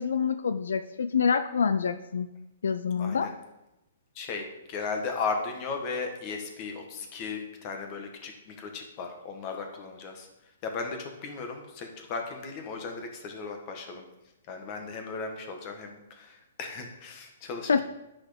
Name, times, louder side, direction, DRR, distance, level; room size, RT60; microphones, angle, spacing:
voice 1, 0.0-2.3 2.6-3.3 17.7-17.8, left 6 dB, 85° left, 11 dB, 0.5 m, -26 dB
voice 2, 3.0-3.3 4.1-14.0 14.5-17.8, left 4 dB, 30° left, 4 dB, 1.6 m, -36 dB
9.5 x 6.4 x 5.1 m, 0.96 s
hypercardioid pair, 155°, 0 cm